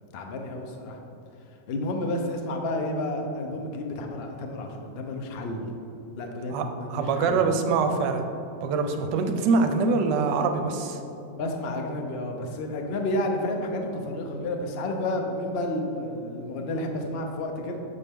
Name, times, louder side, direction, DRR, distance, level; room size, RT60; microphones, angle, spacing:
voice 1, 0.1-1.0 1.7-5.6 6.2-7.5 11.3-17.8, left 1 dB, 70° left, 3 dB, 0.5 m, -31 dB
voice 2, 6.5-8.2 8.6-11.0, right 4 dB, 80° right, 6 dB, 1.2 m, -24 dB
7.3 x 4.3 x 3.5 m, 2.8 s
omnidirectional pair, 1.9 m